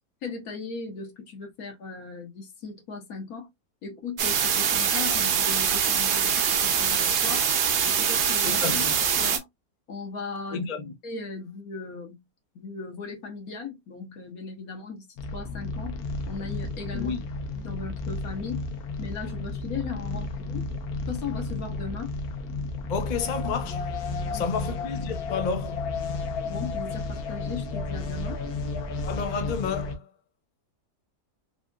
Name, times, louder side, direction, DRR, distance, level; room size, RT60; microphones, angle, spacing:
voice 1, 0.2-3.5 3.8-7.5 7.8-8.6 9.2-9.5 9.9-10.7 11.0-12.2 12.5-16.0 16.3-17.1 17.6-18.6 19.0-20.7 21.1-22.1 24.2-24.5 26.5-28.4, left 4 dB, 75° left, 1.4 m, -37 dB
sound 1, 4.2-9.4, right 7 dB, 80° right, 0.4 m, -24 dB
voice 2, 8.4-9.0 10.5-10.9 16.9-17.2 22.9-23.9 24.3-25.9 29.0-30.1, left 5 dB, 55° left, 0.5 m, -31 dB
sound 2, 15.2-30.0, left 3 dB, 90° left, 1.2 m, -32 dB
3.3 x 2.8 x 2.3 m
omnidirectional pair, 1.6 m